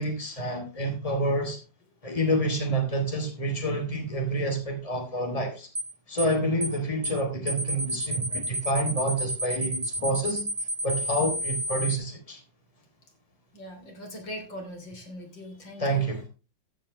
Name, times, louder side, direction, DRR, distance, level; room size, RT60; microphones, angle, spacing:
voice 1, 0.0-1.6 2.0-5.7 6.1-10.4 10.8-12.4 15.8-16.3, right 1 dB, 20° left, 3.0 m, -28 dB
sound 1, 5.7-5.9 6.2-6.3 6.6-6.8 7.0-7.2 7.5-12.0, equal, 25° right, 0.9 m, -30 dB
voice 2, 13.5-16.1, left 1 dB, 75° left, 4.0 m, -41 dB
14.5 x 8.6 x 3.2 m
omnidirectional pair, 2.0 m